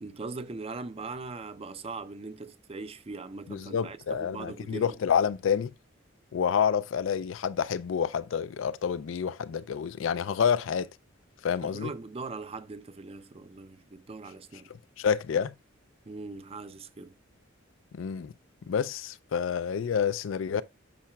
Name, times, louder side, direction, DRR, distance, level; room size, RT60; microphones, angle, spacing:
voice 1, 0.0-5.0 11.6-14.7 16.1-17.2, right 3 dB, 30° right, 0.5 m, -40 dB
voice 2, 3.5-5.7 6.3-10.9 11.4-11.9 15.0-15.5 17.9-18.3 18.7-20.6, left 7 dB, 75° left, 0.4 m, -28 dB
8.6 x 5.7 x 2.3 m
head